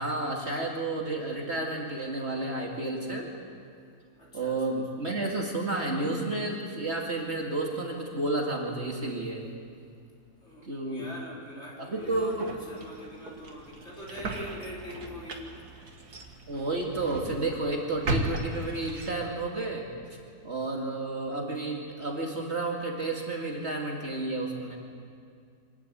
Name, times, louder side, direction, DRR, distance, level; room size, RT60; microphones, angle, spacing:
voice 1, 0.0-3.3 4.3-9.4 10.6-11.1 11.8-12.5 16.5-19.9 20.4-24.8, right 2 dB, 45° right, -1 dB, 2.7 m, -31 dB
voice 2, 4.2-4.6 10.4-15.4, equal, 45° left, -4 dB, 4.6 m, -43 dB
sound 1, 12.0-19.5, right 2 dB, 80° right, 2.3 m, -37 dB
25.5 x 13.0 x 9.3 m, 2.3 s
omnidirectional pair, 1.6 m